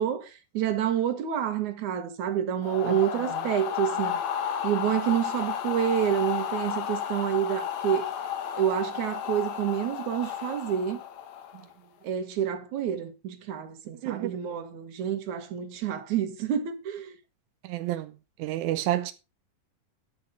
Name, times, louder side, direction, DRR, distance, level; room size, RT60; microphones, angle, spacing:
voice 1, 0.0-4.2 4.6-8.1 8.6-11.0 12.0-17.2, right 9 dB, 60° right, 2.8 m, -28 dB
sound 1, 2.6-11.7, left 9 dB, 60° left, 2.1 m, -32 dB
voice 2, 14.0-14.3 17.6-18.1 18.4-19.1, right 14 dB, 75° right, 1.8 m, -29 dB
14.0 x 6.2 x 5.1 m
omnidirectional pair, 4.1 m